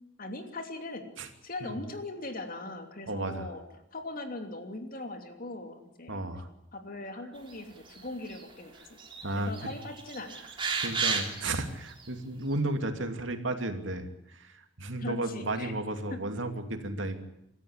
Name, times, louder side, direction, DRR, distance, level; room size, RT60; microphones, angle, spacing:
voice 1, 0.2-1.1 1.4-3.6 3.9-6.2 6.7-9.0 9.3-10.4 15.0-15.7 16.1-16.2, left 2 dB, 45° left, 6 dB, 3.1 m, -40 dB
voice 2, 3.1-3.5 6.1-6.5 9.2-9.7 10.8-17.2, right 2 dB, 75° right, 6 dB, 2.8 m, -33 dB
sound 1, 7.9-8.5 8.8-9.3 9.5-11.5 12.0-12.1, right 4 dB, 25° right, 3.5 m, -32 dB
26.0 x 14.0 x 9.9 m, 0.80 s
head